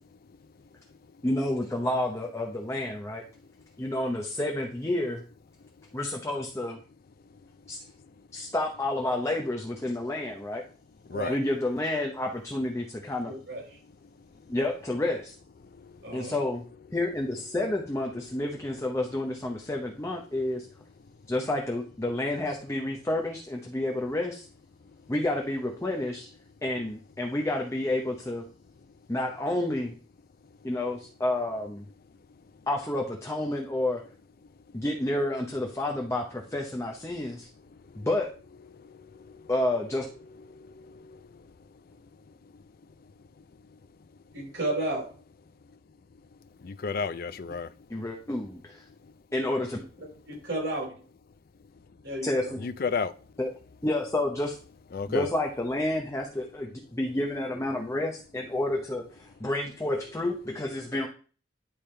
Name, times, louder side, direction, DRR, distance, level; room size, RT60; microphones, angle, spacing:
voice 1, 1.2-3.2 3.8-5.2 5.9-6.8 7.7-7.8 8.3-10.6 11.3-13.3 14.5-15.3 16.1-16.6 16.9-20.7 21.3-24.5 25.1-26.3 26.6-28.4 29.1-30.0 30.6-31.8 32.7-34.0 34.7-37.5 38.0-38.3 39.5-40.1 47.9-48.8 49.3-49.8 52.2-52.6 53.4-53.5 53.8-54.6 55.1-61.1, left 1 dB, 15° left, 0.8 m, -30 dB
voice 2, 13.2-13.6 16.0-16.3 44.3-45.0 50.3-50.9 52.0-52.5, right 1 dB, 65° right, 4.4 m, -32 dB
voice 3, 46.6-47.7 52.6-53.1 54.9-55.3, left 5 dB, 55° left, 0.5 m, -30 dB
10.5 x 3.5 x 4.4 m
head